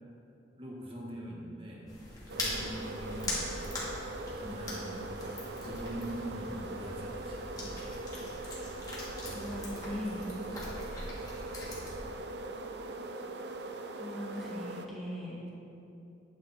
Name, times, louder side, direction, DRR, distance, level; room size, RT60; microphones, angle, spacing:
voice 1, 0.6-3.5 4.4-5.4 5.6-7.4, right 1 dB, 30° right, -3 dB, 1.6 m, -42 dB
sound 1, 1.9-11.9, left 1 dB, 20° left, 2.1 m, -41 dB
sound 2, 2.3-14.9, right 2 dB, 70° right, 0.6 m, -41 dB
voice 2, 4.4-4.9 9.3-10.3 14.0-15.5, left 1 dB, ahead, -8 dB, 2.3 m, -40 dB
9.5 x 9.1 x 4.2 m, 2.8 s
head